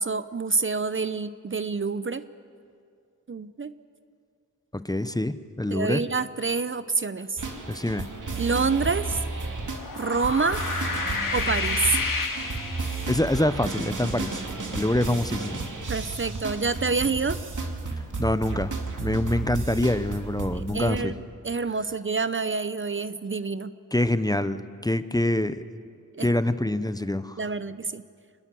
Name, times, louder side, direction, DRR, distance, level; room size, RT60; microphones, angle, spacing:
voice 1, 0.0-2.2 3.3-3.7 5.7-7.4 8.4-9.2 9.9-10.6 11.3-12.0 15.9-17.4 20.5-23.7 26.1-26.3 27.4-28.0, right 4 dB, 40° right, 13 dB, 0.6 m, -27 dB
voice 2, 4.7-6.0 7.7-8.1 13.1-14.4 14.7-15.7 18.2-18.7 19.0-21.1 23.9-25.6 26.2-27.4, left 1 dB, 10° left, 12 dB, 0.7 m, -25 dB
sound 1, 7.4-21.0, right 3 dB, 70° right, 2.5 m, -33 dB
sound 2, 9.6-13.3, left 4 dB, 80° left, 2.4 m, -30 dB
25.0 x 20.5 x 7.6 m, 2.3 s
wide cardioid pair, 95°, 32 cm